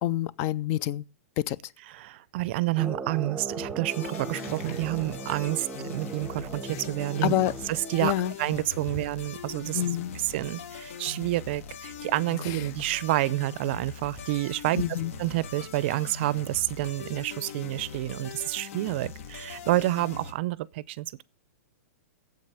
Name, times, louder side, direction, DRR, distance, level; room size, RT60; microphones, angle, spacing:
voice 1, 0.0-1.0 1.4-1.6 4.7-4.8 6.7-6.8 7.2-7.5 8.0-8.3 9.7-10.2 12.4-12.6 14.7-15.1, left 12 dB, 35° left, 0.5 m, -27 dB
voice 2, 1.9-7.3 7.9-8.1 8.4-9.8 10.3-14.8 15.2-21.2, right 17 dB, 45° right, 0.5 m, -29 dB
sound 1, 2.8-8.5, right 3 dB, 10° right, 0.8 m, -38 dB
sound 2, 3.5-3.9 4.1-4.8 5.1-6.2 6.8-8.7 9.0-10.1 10.4-11.2 11.7-13.7 14.0-15.9, left 5 dB, 85° left, 4.6 m, -53 dB
sound 3, 3.9-20.3, left 5 dB, 65° left, 1.5 m, -41 dB
8.8 x 7.7 x 8.9 m
hypercardioid pair, 155°, 8 cm